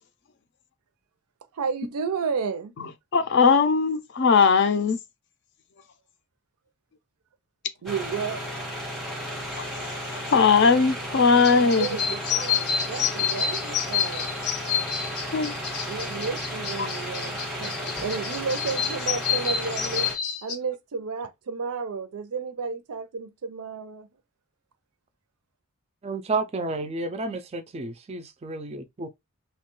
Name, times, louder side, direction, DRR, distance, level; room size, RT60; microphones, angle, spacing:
voice 1, 1.5-2.7 7.8-8.4 11.5-14.3 15.9-17.7 18.0-20.1 20.4-24.1, right 5 dB, 85° right, 0.5 m, -32 dB
voice 2, 2.8-5.0 9.6-9.7 10.1-11.9 15.3-15.5 16.8-16.9, left 5 dB, 50° left, 0.4 m, -20 dB
sound 1, 7.9-20.2, equal, ahead, 0.7 m, -34 dB
sound 2, 11.4-20.6, left 8 dB, 90° left, 0.7 m, -29 dB
voice 3, 26.0-29.1, right 3 dB, 30° right, 0.3 m, -31 dB
2.9 x 2.2 x 2.9 m
head